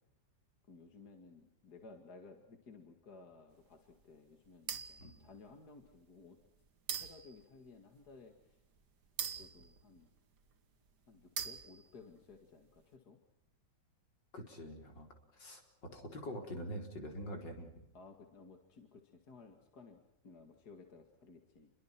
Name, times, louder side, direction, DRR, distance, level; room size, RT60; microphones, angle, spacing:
voice 1, 0.7-6.4 7.0-8.6 9.3-10.1 11.1-13.2 17.9-21.7, left 4 dB, 60° left, 5 dB, 2.6 m, -57 dB
sound 1, 4.7-5.2 5.8-5.9 6.9-7.4 9.2-10.4 11.4-12.0, right 7 dB, 70° right, 2.1 m, -42 dB
voice 2, 5.0-5.3 14.3-15.1 15.3-15.6 15.9-17.7, equal, 85° left, 3 dB, 4.9 m, -45 dB
29.0 x 23.0 x 6.0 m, 0.86 s
omnidirectional pair, 1.9 m